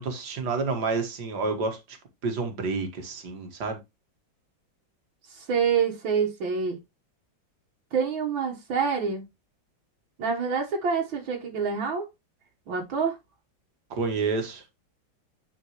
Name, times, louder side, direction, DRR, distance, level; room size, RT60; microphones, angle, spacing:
voice 1, 0.0-2.0 2.2-3.8 13.9-14.6, right 4 dB, 60° right, 2.0 m, -29 dB
voice 2, 5.3-6.8 7.9-9.2 10.2-12.1 12.7-13.1, right 6 dB, 85° right, 2.1 m, -26 dB
9.5 x 4.5 x 3.0 m
omnidirectional pair, 2.1 m